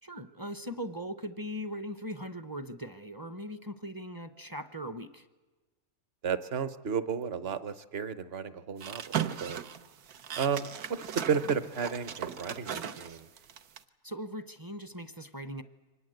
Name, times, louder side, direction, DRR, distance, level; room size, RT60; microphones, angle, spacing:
voice 1, 0.0-5.3 14.0-15.6, equal, 25° right, 10 dB, 0.5 m, -39 dB
voice 2, 6.2-9.6 10.4-13.3, right 6 dB, 50° right, 14 dB, 1.0 m, -33 dB
sound 1, 8.8-13.8, right 9 dB, 85° right, 1.4 m, -37 dB
24.5 x 19.5 x 7.9 m, 1.3 s
omnidirectional pair, 1.5 m